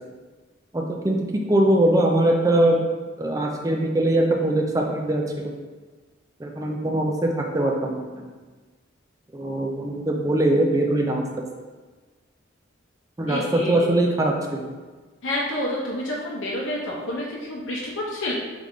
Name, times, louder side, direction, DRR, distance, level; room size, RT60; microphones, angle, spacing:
voice 1, 0.7-1.2 1.5-2.8 3.2-5.5 6.4-8.2 9.3-11.2 13.2-14.7, right 1 dB, 15° right, 1 dB, 0.4 m, -22 dB
voice 2, 13.3-13.9 15.2-18.3, left 1 dB, 80° left, -5 dB, 0.7 m, -29 dB
3.6 x 3.2 x 3.7 m, 1.4 s
head